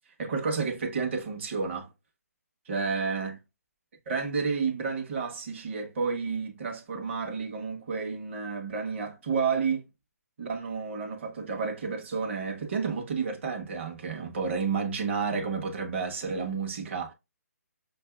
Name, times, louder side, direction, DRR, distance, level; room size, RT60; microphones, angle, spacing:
voice 1, 0.2-1.9 2.7-3.4 4.1-9.8 10.4-17.1, right 5 dB, 45° right, 1.1 m, -31 dB
6.2 x 2.7 x 2.2 m
hypercardioid pair, 160°, 9 cm